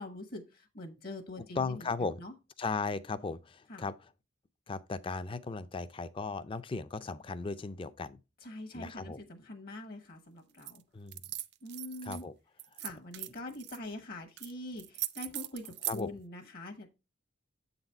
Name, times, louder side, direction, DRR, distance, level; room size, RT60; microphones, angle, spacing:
voice 1, 0.0-2.3 3.7-3.8 8.4-10.8 11.6-12.2 12.8-16.9, left 1 dB, 50° left, 1.0 m, -44 dB
voice 2, 1.6-2.2 2.6-4.1 4.7-8.2 8.7-9.2 10.9-11.2 12.0-12.3 15.9-16.1, left 4 dB, 25° left, 0.4 m, -36 dB
sound 1, 10.6-10.8 11.1-12.2 12.6-13.8 14.4-14.5 14.8-16.0, right 15 dB, 55° right, 0.4 m, -39 dB
7.7 x 4.0 x 4.4 m
head